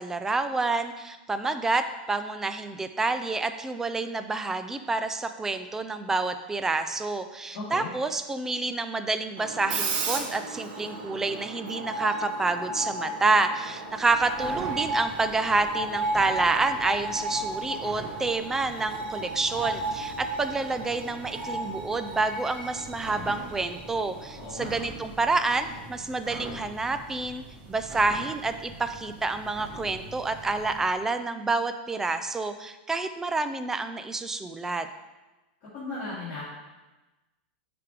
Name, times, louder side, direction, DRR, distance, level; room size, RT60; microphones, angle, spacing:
voice 1, 0.0-27.4 27.7-34.9, right 3 dB, 10° right, 9 dB, 0.3 m, -28 dB
voice 2, 7.5-7.9 24.4-24.7 35.7-36.5, left 2 dB, 35° left, -10 dB, 2.4 m, -36 dB
Screech, 9.4-25.9, right 2 dB, 55° right, 1.3 m, -34 dB
sound 1, 13.8-31.0, right 2 dB, 35° right, 1.3 m, -44 dB
9.6 x 3.5 x 4.7 m, 1.1 s
supercardioid pair, 155°, 6 cm